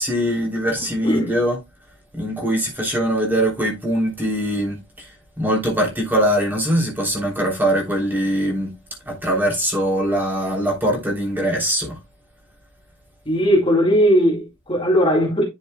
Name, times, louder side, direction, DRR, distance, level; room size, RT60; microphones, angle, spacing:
voice 1, 0.0-1.6 2.1-8.8 9.0-12.0, equal, 10° right, 3.3 m, -22 dB
voice 2, 13.3-15.4, equal, 25° left, 2.0 m, -18 dB
10.0 x 7.1 x 2.2 m
head